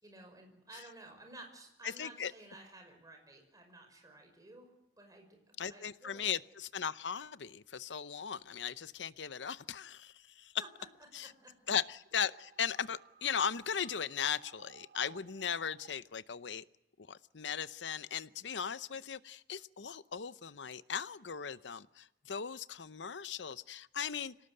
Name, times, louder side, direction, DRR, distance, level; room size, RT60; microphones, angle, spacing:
voice 1, 0.0-6.3 10.6-10.7 11.2-11.7, right 2 dB, 20° right, 3 dB, 5.6 m, -54 dB
voice 2, 1.8-2.3 5.6-10.5 11.1-11.3 11.7-16.6 17.0-24.3, left 7 dB, 80° left, 15 dB, 0.8 m, -38 dB
sound 1, 8.5-8.6 8.9-9.6 11.8-15.9, right 6 dB, 60° right, 1.0 m, -59 dB
26.0 x 18.0 x 7.9 m, 0.89 s
head